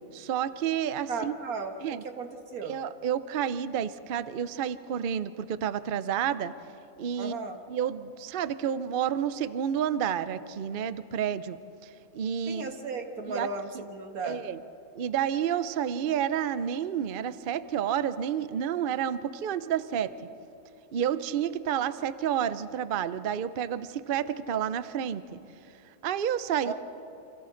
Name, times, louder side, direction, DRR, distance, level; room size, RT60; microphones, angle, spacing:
voice 1, 0.1-1.3 1.8-2.0 2.6-6.5 7.0-7.4 7.7-11.6 12.1-12.7 13.3-13.5 14.2-14.6 15.0-20.1 20.9-25.4 26.0-26.7, right 9 dB, 55° right, 14 dB, 0.6 m, -30 dB
voice 2, 1.1-1.7 2.2-2.8 7.2-7.6 12.5-14.4 26.6-26.7, right 4 dB, 85° right, 5 dB, 2.0 m, -35 dB
30.0 x 26.5 x 3.9 m, 2.8 s
omnidirectional pair, 1.5 m